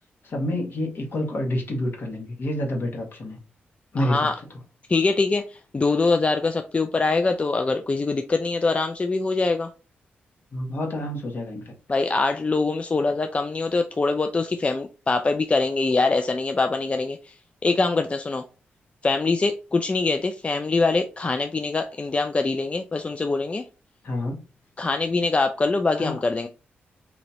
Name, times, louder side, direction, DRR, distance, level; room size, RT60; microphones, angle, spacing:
voice 1, 0.2-3.4 3.9-4.3 10.5-11.7 24.0-24.4 26.0-26.2, left 1 dB, 60° left, 1.6 m, -28 dB
voice 2, 4.0-4.4 4.9-9.7 11.9-17.3 17.6-18.4 19.0-23.7 24.8-26.5, left 3 dB, 30° left, 0.4 m, -23 dB
4.1 x 2.9 x 2.9 m
cardioid pair, 75°, 4 cm